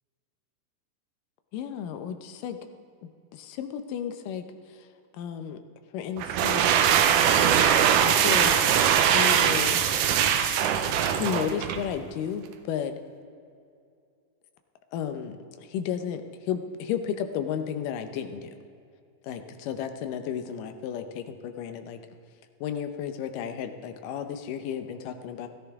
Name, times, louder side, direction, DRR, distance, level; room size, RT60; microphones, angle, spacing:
voice 1, 1.5-2.6 3.0-4.5 5.1-5.6 5.9-6.8 8.0-8.6 9.0-9.8 11.0-13.0 14.9-18.6 19.2-22.0 22.6-25.5, left 8 dB, 75° left, 7 dB, 2.3 m, -33 dB
sound 1, 6.2-11.9, right 8 dB, 75° right, 2.1 m, -22 dB
16.5 x 13.5 x 3.6 m, 2.4 s
omnidirectional pair, 4.0 m